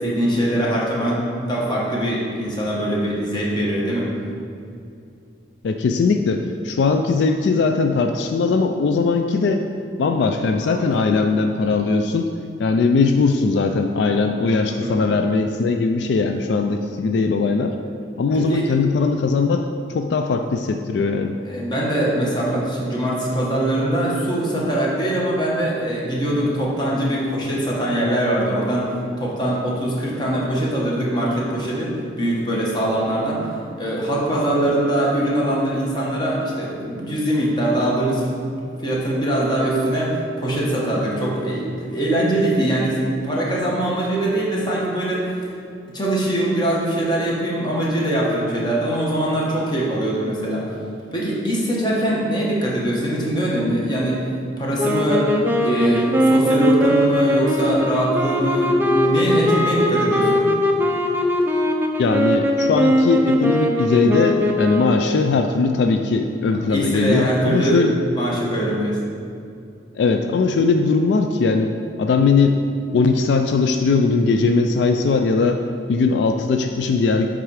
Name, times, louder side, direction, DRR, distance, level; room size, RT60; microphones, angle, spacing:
voice 1, 0.0-4.1 14.8-15.0 18.3-18.6 21.4-28.9 29.2-31.9 32.2-33.4 33.8-38.2 38.8-40.1 40.4-45.2 45.9-50.7 51.1-54.2 54.6-55.3 55.6-60.4 66.7-69.0, right 1 dB, 25° left, -5 dB, 1.2 m, -22 dB
voice 2, 5.6-9.6 10.0-12.3 12.6-17.8 18.2-19.7 19.9-21.4 62.0-68.0 70.0-71.7 72.0-72.6 72.9-75.6 75.9-77.3, left 4 dB, 70° left, 5 dB, 0.3 m, -19 dB
sound 1, 54.8-65.1, left 1 dB, 10° right, 0.4 m, -20 dB
7.9 x 3.7 x 4.8 m, 2.5 s
head